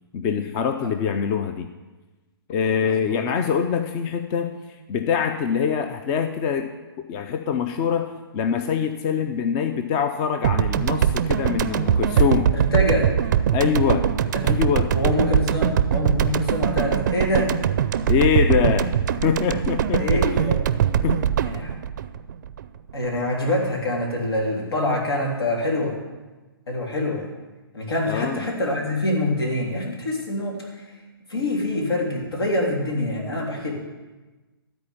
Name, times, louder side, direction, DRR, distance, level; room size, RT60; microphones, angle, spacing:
voice 1, 0.1-1.7 2.5-4.5 4.9-6.7 7.0-12.5 13.5-14.1 14.4-14.9 18.1-18.9 19.2-20.2 21.0-21.2 28.1-28.4, left 7 dB, 25° left, 8 dB, 0.5 m, -24 dB
voice 2, 2.8-3.2 12.5-13.1 14.3-14.4 14.9-17.6 20.0-20.6 21.4-21.8 22.9-26.0 26.7-27.3 27.7-31.0 31.3-33.7, left 1 dB, 80° left, -1 dB, 3.4 m, -25 dB
sound 1, 10.4-22.9, right 8 dB, 50° right, 0.5 m, -22 dB
12.5 x 4.5 x 8.4 m, 1.2 s
hypercardioid pair, 135°, 13 cm